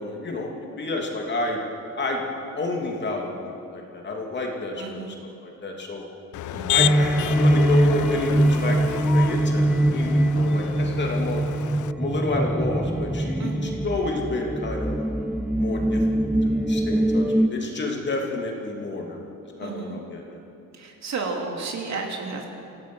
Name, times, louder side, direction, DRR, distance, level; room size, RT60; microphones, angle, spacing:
voice 1, 0.0-1.6 2.0-2.2 2.6-5.1 5.4-6.0 6.7-11.4 12.0-15.0 15.6-19.2 19.6-20.4, left 2 dB, 30° left, 0 dB, 2.9 m, -30 dB
voice 2, 4.8-5.1 6.5-6.9 13.4-13.8 19.6-20.1 20.7-22.5, right 4 dB, 50° right, 1 dB, 3.0 m, -32 dB
Motor vehicle (road), 6.3-11.9, left 14 dB, 60° left, 0.5 m, -30 dB
sound 1, 6.8-17.5, right 1 dB, 5° right, 0.4 m, -22 dB
26.5 x 16.5 x 6.3 m, 2.7 s
cardioid pair, 165°, 34 cm